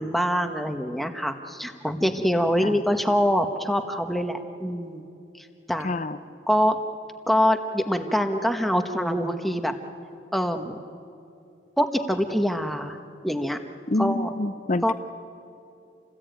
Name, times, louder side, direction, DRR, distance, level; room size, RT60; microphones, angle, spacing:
voice 1, 0.0-5.0 5.3-5.9 6.5-6.8 7.3-9.7 10.3-10.8 11.8-13.0 13.2-13.6 14.0-14.3 14.8-14.9, equal, ahead, 6 dB, 1.1 m, -24 dB
voice 2, 5.8-6.2 13.9-14.9, left 2 dB, 40° left, 10 dB, 0.6 m, -27 dB
28.5 x 19.0 x 9.1 m, 2.6 s
head